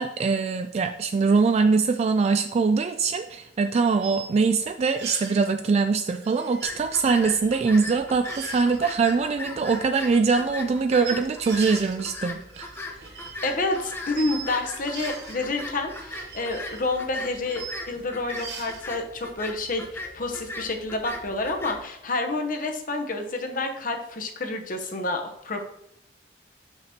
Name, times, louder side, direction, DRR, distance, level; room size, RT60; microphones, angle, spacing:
voice 1, 0.0-12.7, right 4 dB, 35° right, 7 dB, 0.3 m, -23 dB
sound 1, 4.0-4.3 4.8-5.5 6.2-7.5 7.8-7.9 8.2-8.8 9.5-10.1 11.0-12.0 12.3-14.4 14.7-15.4 15.8-17.8 18.3-18.8, right 6 dB, 70° right, 1.1 m, -41 dB
sound 2, 6.6-21.8, left 2 dB, 15° left, 0.7 m, -39 dB
voice 2, 13.4-25.6, left 2 dB, 50° left, 4 dB, 1.0 m, -29 dB
5.9 x 5.8 x 4.3 m, 0.80 s
head